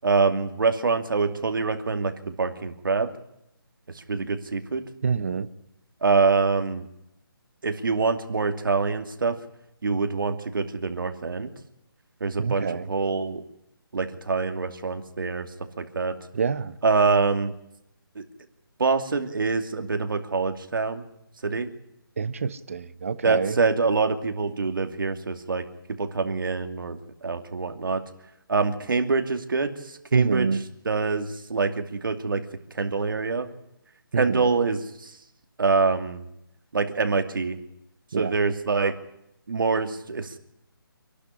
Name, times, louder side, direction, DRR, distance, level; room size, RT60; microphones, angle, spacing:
voice 1, 0.0-3.1 4.1-4.8 6.0-6.8 7.6-9.4 9.8-11.5 12.2-13.4 13.9-15.5 15.8-16.1 16.8-17.5 18.2-18.3 18.8-21.0 21.4-21.7 23.2-25.6 26.0-28.0 28.5-32.4 32.7-33.5 34.2-35.1 35.6-36.2 36.7-37.6 38.2-38.9 39.5-40.4, right 4 dB, 60° right, 7 dB, 2.6 m, -25 dB
voice 2, 5.0-5.5 12.4-12.9 16.3-16.7 22.2-23.5 30.1-30.6 34.1-34.5 38.1-38.3, right 5 dB, 35° right, 14 dB, 0.9 m, -26 dB
26.0 x 12.0 x 9.9 m, 0.80 s
hypercardioid pair, 175°, 12 cm